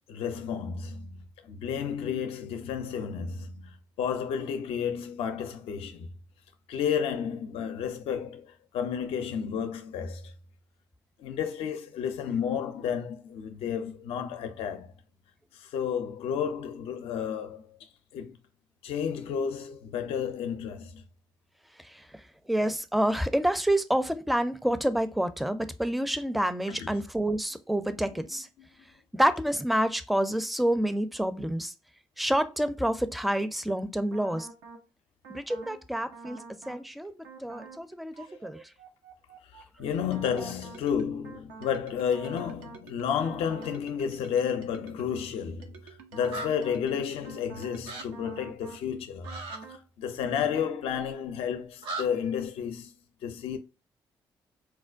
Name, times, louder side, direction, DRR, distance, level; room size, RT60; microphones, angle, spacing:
voice 1, 0.1-6.1 6.7-10.3 11.2-14.9 15.5-17.8 18.1-18.4 18.8-21.0 26.7-27.0 28.0-28.7 39.4-49.3 49.7-52.9 53.2-53.6, left 7 dB, 70° left, 0.4 m, -32 dB
voice 2, 22.5-28.5 29.1-31.7 32.2-34.5 35.3-36.4 36.7-37.1 37.4-38.1 38.4-38.6 40.4-40.5, right 1 dB, ahead, 0.4 m, -28 dB
sound 1, 34.1-34.8 35.2-35.8 36.1-36.8 37.2-37.8 38.2-45.2 45.6-48.8 49.2-49.8, right 5 dB, 90° right, 0.5 m, -48 dB
sound 2, 46.3-46.5 47.8-48.0 49.2-49.6 51.8-52.1, right 2 dB, 65° right, 0.9 m, -36 dB
4.4 x 2.1 x 2.4 m
hypercardioid pair, 45°, 10 cm